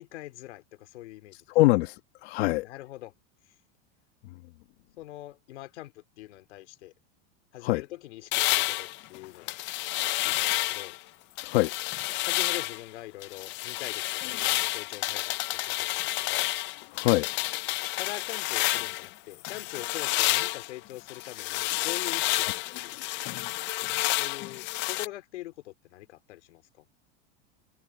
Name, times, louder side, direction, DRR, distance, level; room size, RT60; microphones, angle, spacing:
voice 1, 0.0-1.5 2.6-3.1 5.0-6.9 7.5-9.6 10.2-11.0 12.2-16.5 18.0-23.3 24.2-26.9, left 16 dB, 90° left, 3.6 m, -43 dB
voice 2, 1.5-2.7 7.6-7.8 11.4-11.7 16.9-17.3, left 20 dB, 65° left, 1.4 m, -24 dB
sound 1, 8.3-11.0 11.4-12.8 13.2-19.1 19.4-25.1, left 20 dB, 35° left, 0.5 m, -30 dB
supercardioid pair, 150°, 33 cm